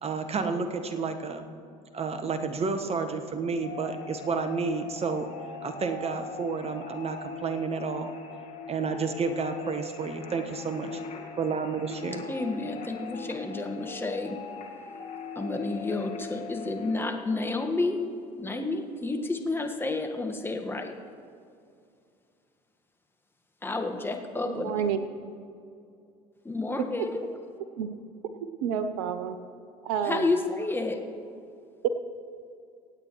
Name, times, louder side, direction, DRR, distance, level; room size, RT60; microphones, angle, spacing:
voice 1, 0.0-1.4 1.9-5.3 5.6-8.1 8.7-11.0 11.4-12.2, right 4 dB, 30° right, 8 dB, 1.3 m, -30 dB
sound 1, 3.6-17.0, left 5 dB, 40° left, 2.0 m, -41 dB
voice 2, 12.3-14.4 15.3-18.0 18.4-20.9 23.6-24.7 26.4-27.2 30.0-31.0, left 3 dB, 10° left, 4 dB, 1.5 m, -30 dB
voice 3, 24.5-25.0 27.8-27.9 28.6-29.4 29.8-30.3 31.8-31.9, right 8 dB, 70° right, 10 dB, 0.7 m, -29 dB
25.0 x 8.9 x 3.1 m, 2.4 s
hypercardioid pair, 70°, 19 cm